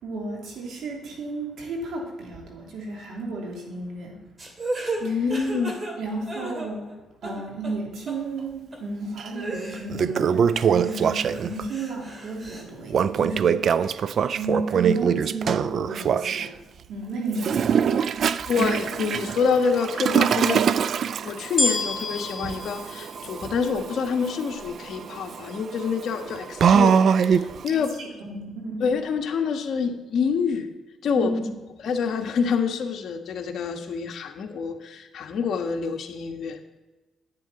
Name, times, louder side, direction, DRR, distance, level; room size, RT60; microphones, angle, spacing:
voice 1, 0.0-4.2 5.0-5.2 6.0-6.9 7.2-14.1 14.3-16.5 16.9-17.6 27.7-28.8 31.2-31.4, right 2 dB, 75° right, -1 dB, 3.1 m, -33 dB
sound 1, 4.4-7.0 7.2-7.8 8.1-8.2 8.7-8.8 9.4-10.3 10.8-12.6, right 2 dB, 30° right, 2.5 m, -34 dB
voice 2, 5.0-5.8 18.5-20.6 21.2-27.9 28.8-30.7 31.0-31.3 31.8-36.6, left 5 dB, 65° left, 4 dB, 1.3 m, -27 dB
Toilet flush, 9.2-9.3 9.7-11.6 12.9-16.5 17.3-27.7, right 7 dB, 60° right, 0.3 m, -24 dB
sound 2, 21.6-24.0 24.6-24.7, left 2 dB, 25° left, 3.0 m, -28 dB
10.5 x 9.3 x 4.3 m, 1.1 s
cardioid pair, 90°, 0 cm